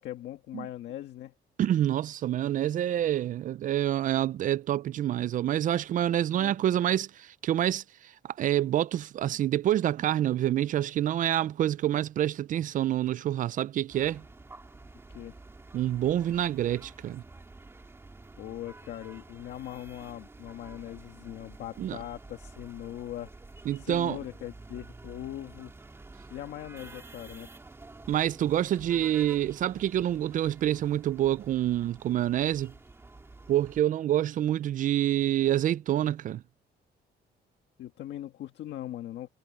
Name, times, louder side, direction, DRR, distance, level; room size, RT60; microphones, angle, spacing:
voice 1, 0.0-1.3 6.3-6.6 15.1-15.4 18.4-23.3 23.8-25.7 26.3-27.5 37.8-39.3, left 13 dB, 80° left, 1.5 m, -40 dB
voice 2, 1.6-14.2 15.7-17.2 21.8-22.0 23.7-24.2 28.1-32.7 33.5-36.4, right 12 dB, 45° right, 0.4 m, -27 dB
sound 1, 13.9-33.8, right 3 dB, 15° right, 2.5 m, -50 dB
cardioid pair, 165°, 18 cm